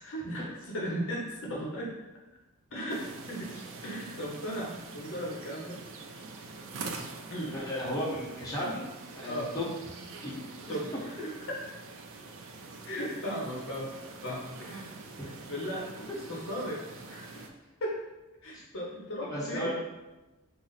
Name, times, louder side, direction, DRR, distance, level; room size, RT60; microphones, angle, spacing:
voice 1, 0.0-1.9 2.7-5.8 6.1-6.3 7.3-7.6 8.6-8.7 9.3-9.5 10.7-11.6 12.9-13.9 14.2-14.9 15.2-17.4 17.8-17.9 18.4-19.7, equal, 60° left, -3 dB, 0.9 m, -37 dB
sound 1, 2.9-17.5, right 3 dB, 65° right, 0.5 m, -45 dB
voice 2, 7.5-8.8 9.1-9.7 10.2-10.3 10.7-10.8 16.1-16.2 18.5-18.6 19.2-19.7, left 1 dB, 15° left, -7 dB, 1.2 m, -34 dB
5.7 x 2.1 x 4.0 m, 1.1 s
head